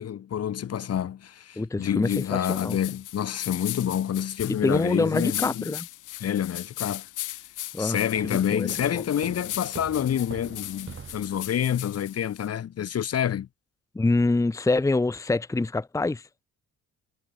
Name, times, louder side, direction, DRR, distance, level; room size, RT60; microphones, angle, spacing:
voice 1, 0.0-5.7 6.2-7.1 7.8-13.5, left 9 dB, 55° left, 1.4 m, -28 dB
voice 2, 1.6-2.8 4.5-5.9 7.7-8.0 8.2-9.0 13.9-16.3, left 2 dB, 10° left, 0.8 m, -26 dB
sound 1, 2.0-12.5, left 14 dB, 80° left, 2.8 m, -38 dB
sound 2, 8.1-11.8, right 6 dB, 40° right, 3.4 m, -44 dB
cardioid pair, 90°, 30 cm